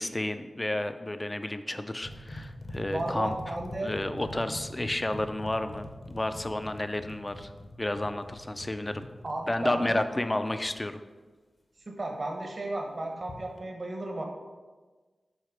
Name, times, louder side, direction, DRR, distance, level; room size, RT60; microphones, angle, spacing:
voice 1, 0.0-3.6 3.8-7.5 7.8-9.1 9.5-11.0, left 1 dB, 20° left, 9 dB, 0.4 m, -31 dB
sound 1, 2.0-10.8 13.2-13.6, left 1 dB, 45° left, 0.7 m, -43 dB
voice 2, 2.9-3.9 9.2-10.1 11.9-14.2, right 2 dB, 45° right, 2 dB, 1.0 m, -34 dB
6.5 x 4.0 x 5.0 m, 1.3 s
wide cardioid pair, 90°, 0 cm